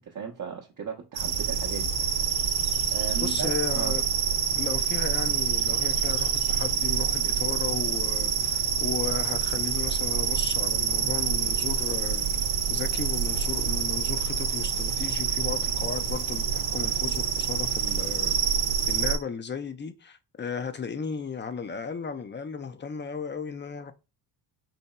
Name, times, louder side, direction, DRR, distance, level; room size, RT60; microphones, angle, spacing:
voice 1, 0.0-2.1 2.9-4.0, right 6 dB, 40° right, 0.7 m, -36 dB
sound 1, 1.1-19.2, right 7 dB, 80° right, 0.8 m, -27 dB
voice 2, 3.2-4.0 4.5-18.3 18.9-23.9, left 6 dB, 25° left, 0.5 m, -35 dB
4.2 x 2.7 x 2.2 m
supercardioid pair, 55°, 49 cm